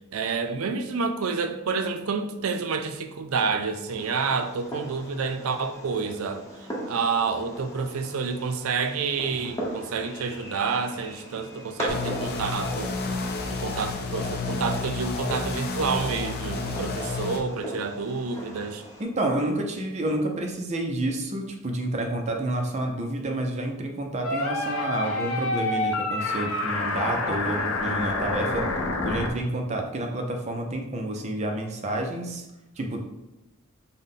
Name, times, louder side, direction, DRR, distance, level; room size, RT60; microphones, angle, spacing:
voice 1, 0.1-6.5 6.9-12.9 13.5-18.8, right 5 dB, 90° right, 8 dB, 0.4 m, -29 dB
Fireworks, 3.9-19.0, right 1 dB, 15° left, 0.9 m, -39 dB
sound 1, 11.9-17.4, left 3 dB, 50° left, 0.5 m, -30 dB
voice 2, 19.0-28.7 29.0-32.5 32.8-33.1, right 1 dB, 35° right, 2 dB, 0.5 m, -29 dB
sound 2, 24.2-29.3, left 2 dB, 90° left, 0.7 m, -28 dB
5.5 x 2.1 x 3.6 m, 0.98 s
head